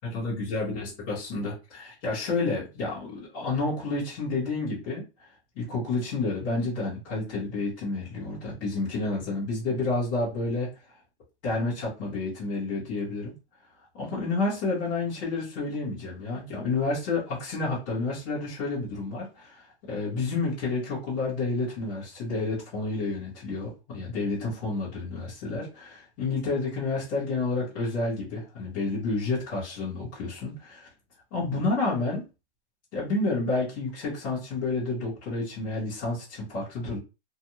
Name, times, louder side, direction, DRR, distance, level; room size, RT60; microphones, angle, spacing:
voice 1, 0.1-5.0 5.6-10.7 11.4-13.3 13.9-30.9 31.3-32.2 32.9-37.0, left 3 dB, 5° left, -12 dB, 0.3 m, -30 dB
2.6 x 2.1 x 2.8 m, 0.29 s
hypercardioid pair, 155°, 34 cm